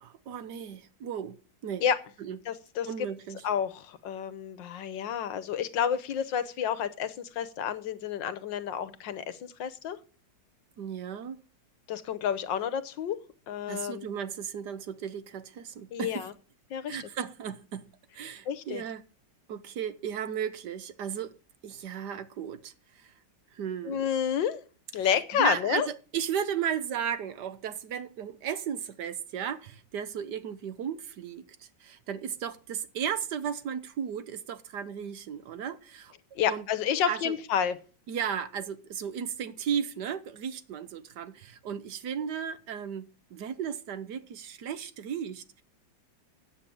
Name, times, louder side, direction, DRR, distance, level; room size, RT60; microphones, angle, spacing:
voice 1, 0.0-1.8 2.2-2.4 2.9-3.4 10.8-11.4 13.7-16.3 16.9-17.9 18.1-19.0 19.5-21.3 21.6-23.1 23.5-24.0 25.3-36.7 37.1-37.3 38.1-45.6, right 8 dB, 65° right, 1.4 m, -35 dB
voice 2, 2.5-2.9 3.4-10.0 11.9-13.2 13.5-14.1 15.9-16.3 16.7-17.0 18.5-18.8 23.9-24.6 24.9-25.9 36.3-37.8, left 8 dB, 75° left, 1.6 m, -30 dB
8.7 x 7.5 x 8.5 m
omnidirectional pair, 2.0 m